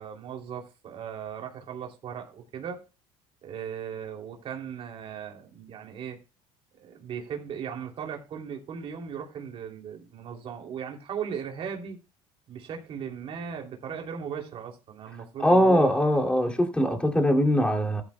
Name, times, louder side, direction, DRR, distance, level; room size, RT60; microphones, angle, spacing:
voice 1, 0.0-2.8 3.4-6.2 6.8-12.0 12.5-15.9, right 7 dB, 50° right, 3.1 m, -37 dB
voice 2, 15.4-18.0, equal, 10° left, 2.7 m, -22 dB
14.5 x 11.5 x 2.3 m
supercardioid pair, 105°, 13 cm